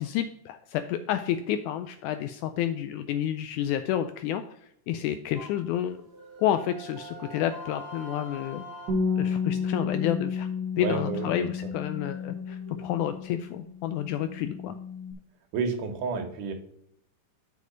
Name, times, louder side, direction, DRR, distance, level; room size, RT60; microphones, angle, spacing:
voice 1, 0.0-4.6 4.9-6.0 6.4-8.6 9.2-10.5 10.8-14.8, left 11 dB, 80° left, 9 dB, 1.9 m, -30 dB
sound 1, 5.3-9.2 12.3-12.8, equal, 30° right, 2.0 m, -44 dB
Bass guitar, 8.9-15.1, left 5 dB, 50° right, 1.2 m, -32 dB
voice 2, 10.8-11.5 15.5-16.5, right 5 dB, 80° right, 4 dB, 2.7 m, -30 dB
7.9 x 5.3 x 5.1 m, 0.75 s
omnidirectional pair, 3.7 m